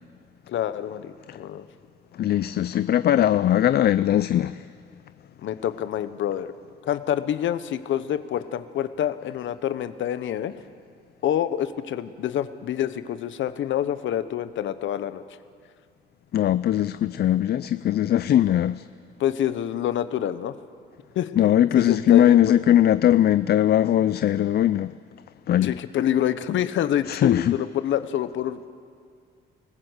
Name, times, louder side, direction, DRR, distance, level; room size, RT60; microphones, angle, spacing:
voice 1, 0.5-1.7 5.4-6.5 6.8-10.5 11.2-15.2 19.2-20.5 21.1-21.3 21.7-22.6 25.6-28.6, left 10 dB, 75° left, 1.0 m, -27 dB
voice 2, 2.2-4.6 16.3-18.9 21.4-24.9 25.5-25.8 27.1-27.5, left 11 dB, 55° left, 0.5 m, -20 dB
26.5 x 15.0 x 8.1 m
cardioid pair, 90°, 20 cm